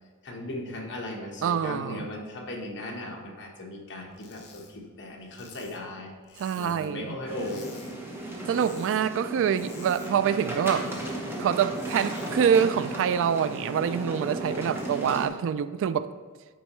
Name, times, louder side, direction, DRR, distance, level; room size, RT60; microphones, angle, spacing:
voice 1, 0.2-7.7, left 1 dB, 55° left, 1.2 m, -37 dB
voice 2, 1.4-2.1 6.4-7.2 8.5-10.9 11.4-16.1, right 8 dB, 60° right, 0.3 m, -26 dB
sound 1, 4.1-4.7 5.0-7.0 7.3-7.9 8.2-9.0 9.3-11.2 11.5-12.3, left 6 dB, 85° left, 1.2 m, -52 dB
sound 2, 7.3-15.3, right 1 dB, 10° right, 1.0 m, -35 dB
9.1 x 5.4 x 3.1 m
head